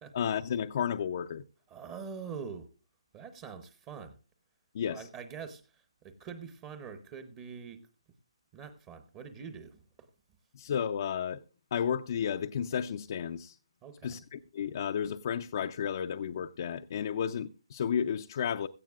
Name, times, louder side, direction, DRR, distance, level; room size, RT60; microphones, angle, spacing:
voice 1, 0.1-1.4 4.7-5.1 10.5-11.4 11.7-13.6 14.0-18.7, left 8 dB, 45° left, 0.5 m, -32 dB
voice 2, 1.7-2.7 3.1-4.2 4.9-7.9 8.5-10.1 13.8-14.2, right 6 dB, 20° right, 0.8 m, -44 dB
16.5 x 14.0 x 2.4 m
hypercardioid pair, 160°, 3 cm